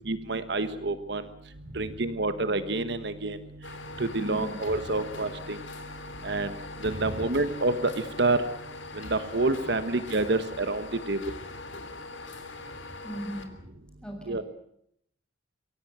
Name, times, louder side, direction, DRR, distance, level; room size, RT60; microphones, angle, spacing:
voice 1, 0.1-1.2 1.7-3.4 4.0-5.6 6.2-6.5 6.8-7.9 8.2-8.4 8.9-11.2 14.3-14.4, right 2 dB, 60° right, 11 dB, 1.3 m, -28 dB
sound 1, 1.5-13.4, right 2 dB, 80° right, 5.4 m, -51 dB
sound 2, 3.6-13.5, left 3 dB, 80° left, 3.3 m, -42 dB
voice 2, 4.2-4.6 6.9-7.3 13.0-13.6 14.0-14.4, equal, 5° left, 1 dB, 7.0 m, -38 dB
25.0 x 17.0 x 9.0 m, 0.74 s
head